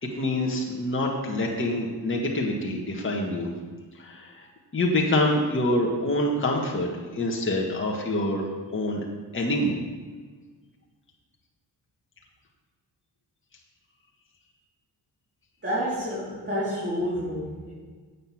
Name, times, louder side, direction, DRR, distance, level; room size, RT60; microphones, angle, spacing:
voice 1, 0.0-3.5 4.0-4.5 4.7-9.0 9.3-9.8, left 1 dB, 30° left, -1 dB, 1.9 m, -26 dB
voice 2, 15.6-17.7, equal, 25° right, -9 dB, 4.0 m, -29 dB
8.9 x 8.3 x 6.0 m, 1.5 s
cardioid pair, 85°, 43 cm